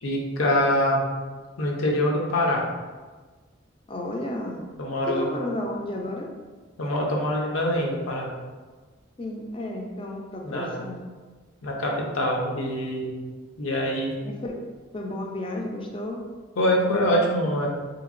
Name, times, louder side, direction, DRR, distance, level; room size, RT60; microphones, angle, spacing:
voice 1, 0.0-1.0 1.6-2.6 4.8-5.3 6.8-8.3 10.4-10.8 11.6-13.1 13.6-14.1 16.6-17.7, left 1 dB, 80° left, -1 dB, 0.6 m, -24 dB
voice 2, 3.9-4.7 5.1-6.3 9.2-11.0 14.2-14.5 14.9-16.2, left 1 dB, 25° left, 0 dB, 0.3 m, -32 dB
3.4 x 2.9 x 2.5 m, 1.4 s
head